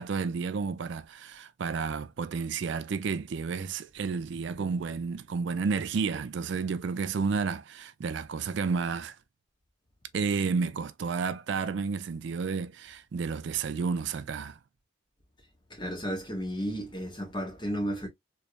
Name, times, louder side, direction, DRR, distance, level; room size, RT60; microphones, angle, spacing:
voice 1, 0.0-9.2 10.1-14.6, right 5 dB, 60° right, 0.3 m, -31 dB
voice 2, 15.7-18.1, equal, 20° left, 1.4 m, -33 dB
3.3 x 3.1 x 2.5 m
head